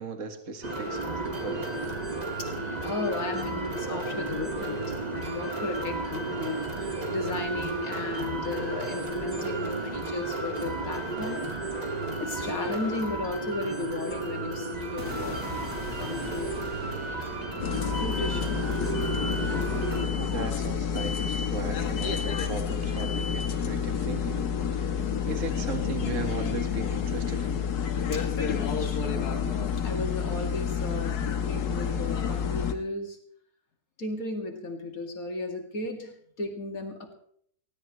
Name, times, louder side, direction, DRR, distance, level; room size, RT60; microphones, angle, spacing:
voice 1, 0.0-1.7 20.1-24.4 24.7-25.0 25.3-27.6, right 4 dB, 55° right, 6 dB, 1.9 m, -37 dB
sound 1, 0.6-20.0, right 2 dB, 25° right, 2.2 m, -33 dB
voice 2, 2.8-11.6 12.2-15.4 16.0-16.7 17.9-18.7 28.1-33.2 34.0-37.1, left 2 dB, 65° left, 3 dB, 2.8 m, -35 dB
sound 2, 15.0-21.0, equal, 75° right, 3.9 m, -41 dB
sound 3, 17.6-32.7, left 7 dB, 85° left, 1.7 m, -29 dB
20.0 x 16.5 x 3.1 m, 0.64 s
omnidirectional pair, 1.6 m